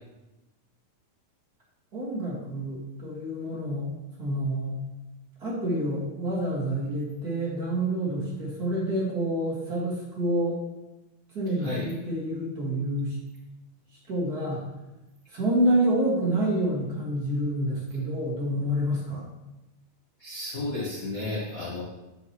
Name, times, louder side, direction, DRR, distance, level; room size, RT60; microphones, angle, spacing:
voice 1, 1.9-3.9 4.2-4.8 5.4-10.6 11.3-13.2 14.1-14.6 15.3-19.2, right 1 dB, 35° right, -6 dB, 1.9 m, -28 dB
voice 2, 11.6-11.9 20.2-21.8, left 2 dB, 85° left, -7 dB, 0.7 m, -32 dB
8.1 x 7.9 x 3.0 m, 1.0 s
omnidirectional pair, 3.9 m